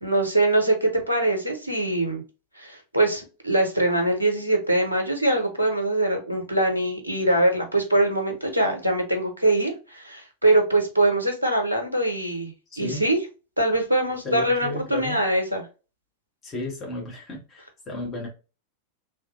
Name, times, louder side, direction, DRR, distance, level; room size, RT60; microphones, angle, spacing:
voice 1, 0.0-2.2 2.6-13.2 13.6-15.7, right 1 dB, 85° right, 0.8 m, -23 dB
voice 2, 14.2-15.2 16.4-18.3, left 3 dB, 25° left, 1.3 m, -33 dB
3.2 x 2.5 x 2.5 m
figure-of-eight pair, 90°, 0 cm